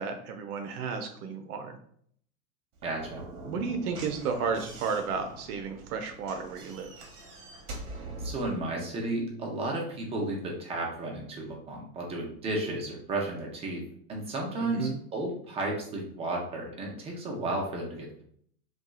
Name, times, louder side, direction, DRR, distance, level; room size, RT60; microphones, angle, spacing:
voice 1, 0.0-1.8 3.4-6.9 14.6-15.0, right 5 dB, 75° right, 5 dB, 0.5 m, -33 dB
Slam / Knock, 2.7-8.6, right 2 dB, 45° right, 0.8 m, -43 dB
voice 2, 2.8-3.2 8.2-13.8 14.1-18.2, right 2 dB, 15° right, -1 dB, 0.4 m, -33 dB
2.7 x 2.3 x 2.3 m, 0.63 s
hypercardioid pair, 105°, 46 cm